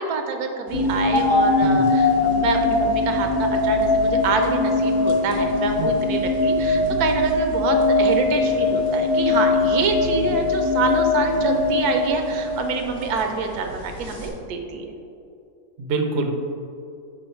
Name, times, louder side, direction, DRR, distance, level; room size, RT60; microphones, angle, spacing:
voice 1, 0.0-14.9, right 5 dB, 80° right, 4 dB, 1.2 m, -26 dB
sound 1, 0.7-12.8, left 3 dB, 70° left, 0.5 m, -21 dB
sound 2, 0.7-14.3, left 1 dB, 55° left, 1.5 m, -41 dB
voice 2, 1.6-1.9 5.8-5.9 15.8-16.3, right 3 dB, 60° right, 4 dB, 0.7 m, -25 dB
6.3 x 4.6 x 4.3 m, 2.5 s
omnidirectional pair, 1.6 m